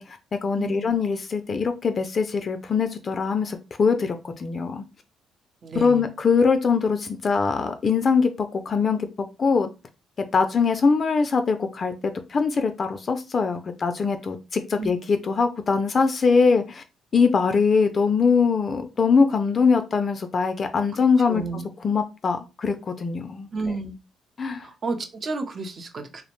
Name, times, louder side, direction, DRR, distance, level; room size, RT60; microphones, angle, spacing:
voice 1, 0.0-4.8 5.7-9.1 9.4-9.7 10.2-11.9 12.3-16.8 17.1-23.5 24.4-24.7, left 5 dB, 45° left, 8 dB, 0.3 m, -22 dB
voice 2, 0.5-0.9 5.6-6.1 14.8-14.9 21.3-21.6 23.5-24.0 24.6-26.2, right 3 dB, 45° right, 6 dB, 0.5 m, -31 dB
2.4 x 2.0 x 3.0 m, 0.28 s
cardioid pair, 90°, 0 cm